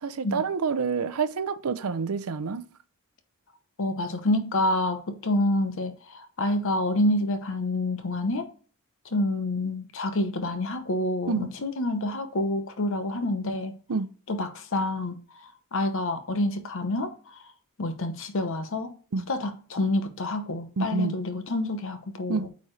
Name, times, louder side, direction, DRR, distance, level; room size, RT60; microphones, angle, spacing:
voice 1, 0.0-2.6 11.3-11.5 13.9-14.1 19.1-19.3 20.8-21.1 22.3-22.5, right 5 dB, 90° right, 0.6 m, -28 dB
voice 2, 3.8-8.5 9.1-13.7 14.3-15.2 15.7-17.1 17.8-18.9 19.3-22.5, left 1 dB, 65° left, 0.9 m, -27 dB
8.4 x 4.2 x 3.2 m
head